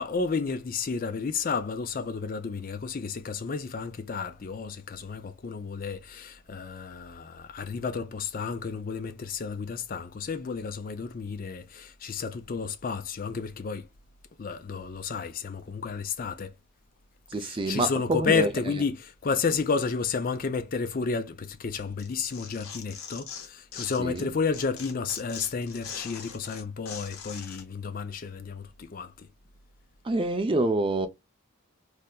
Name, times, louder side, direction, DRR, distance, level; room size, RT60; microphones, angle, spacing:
voice 1, 0.0-13.8 14.4-16.5 17.4-29.3, left 5 dB, 40° left, 0.4 m, -31 dB
voice 2, 17.3-18.5 24.0-24.3 30.0-31.1, right 2 dB, 25° right, 0.4 m, -26 dB
Tearing, 22.0-24.2 24.5-27.6, left 7 dB, 75° left, 0.9 m, -41 dB
3.2 x 2.7 x 2.3 m
head